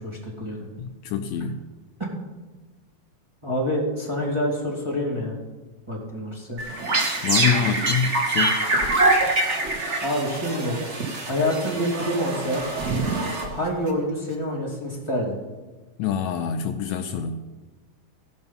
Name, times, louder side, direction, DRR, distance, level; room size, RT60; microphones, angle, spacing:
voice 1, 0.0-0.7 3.4-5.4 5.9-6.6 10.0-10.8 11.2-12.6 13.5-15.4, equal, 10° right, -5 dB, 2.0 m, -27 dB
voice 2, 0.8-1.6 7.2-8.6 16.0-17.4, left 7 dB, 80° left, 7 dB, 1.8 m, -26 dB
sound 1, 6.6-13.9, right 2 dB, 55° right, 0.7 m, -24 dB
16.0 x 5.5 x 5.5 m, 1.2 s
omnidirectional pair, 3.4 m